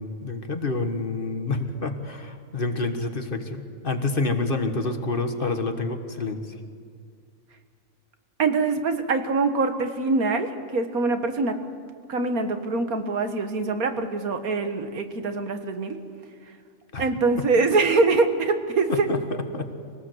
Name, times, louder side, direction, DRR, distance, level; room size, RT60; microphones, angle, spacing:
voice 1, 0.0-6.5 16.9-17.1 17.4-17.5 18.9-19.2 19.5-19.6, left 3 dB, 40° left, 7 dB, 1.5 m, -28 dB
voice 2, 8.4-11.6 12.1-16.0 17.0-19.1, right 3 dB, 85° right, 7 dB, 1.9 m, -24 dB
24.0 x 18.5 x 7.9 m, 2.2 s
omnidirectional pair, 1.5 m